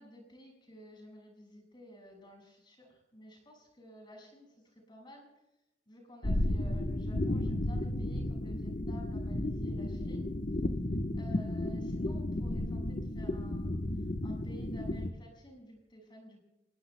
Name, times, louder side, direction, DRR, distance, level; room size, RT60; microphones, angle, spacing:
voice 1, 0.0-5.3 5.9-10.3 11.1-16.4, equal, 25° left, 0 dB, 5.7 m, -53 dB
sound 1, 6.2-15.1, left 1 dB, 45° left, 1.1 m, -33 dB
29.0 x 20.5 x 2.2 m, 0.90 s
head